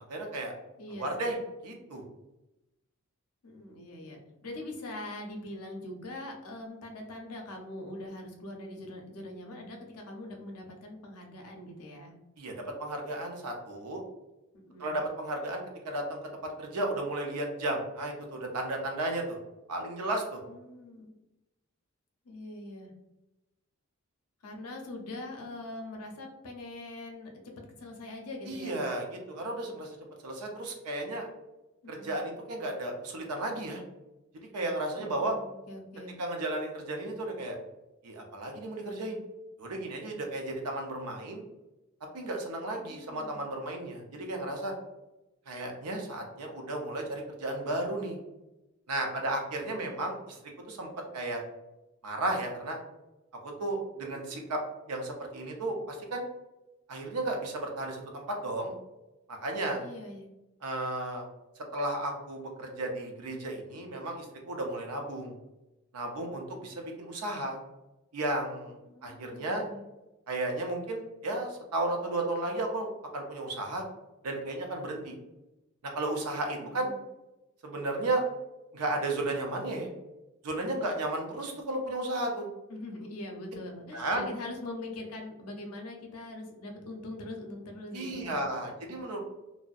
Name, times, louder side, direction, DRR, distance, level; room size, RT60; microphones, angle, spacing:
voice 1, 0.1-0.5 0.9-1.4 1.6-2.0 12.4-14.0 14.8-16.2 16.6-19.4 19.7-20.4 28.5-30.0 30.2-31.3 31.9-33.8 34.5-35.3 36.2-37.6 38.0-39.2 39.6-41.4 42.1-44.7 45.5-48.2 48.9-50.4 50.7-51.4 52.0-52.8 53.4-54.6 54.9-56.2 56.9-58.8 59.3-59.8 60.6-61.3 61.7-65.3 65.9-67.6 68.1-68.7 69.0-69.6 70.3-73.8 74.2-75.1 75.9-76.9 77.6-78.2 78.7-79.9 80.4-82.5 83.9-84.3 87.9-89.2, right 2 dB, 90° right, 2 dB, 0.6 m, -34 dB
voice 2, 0.8-1.3 3.4-12.1 14.5-15.0 20.5-21.1 22.2-22.9 24.4-27.3 27.8-28.8 31.8-32.2 35.0-36.2 42.7-43.4 49.6-50.0 53.9-54.4 59.8-60.3 68.8-69.9 76.6-77.0 82.7-88.4, left 1 dB, 85° left, 2 dB, 0.6 m, -43 dB
2.6 x 2.0 x 2.3 m, 0.97 s
head